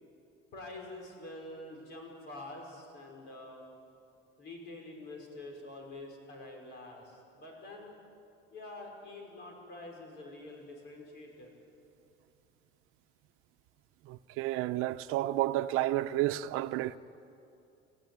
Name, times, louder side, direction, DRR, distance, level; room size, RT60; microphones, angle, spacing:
voice 1, 0.5-3.6 4.4-8.0 8.5-11.5, left 2 dB, 55° left, 5.5 m, -46 dB
voice 2, 14.1-17.0, right 15 dB, 85° right, 0.8 m, -31 dB
28.5 x 15.5 x 9.4 m
cardioid pair, 175°, 21 cm